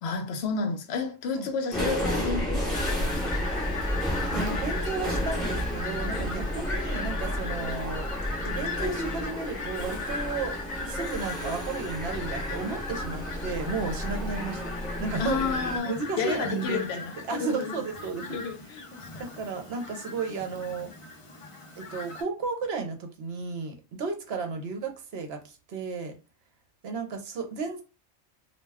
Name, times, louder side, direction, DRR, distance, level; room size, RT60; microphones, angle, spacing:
voice 1, 0.0-3.5 15.2-17.8 18.2-19.3, left 5 dB, 65° left, 0.8 m, -31 dB
sound 1, 1.7-15.8, equal, ahead, 0.8 m, -31 dB
Fowl, 2.7-22.2, left 4 dB, 45° left, 0.4 m, -38 dB
voice 2, 4.3-8.1 8.4-14.6 15.0-15.5 15.9-16.9 17.3-18.4 19.2-20.9 21.8-26.1 26.8-27.8, right 4 dB, 65° right, 0.8 m, -33 dB
2.3 x 2.2 x 3.3 m
omnidirectional pair, 1.2 m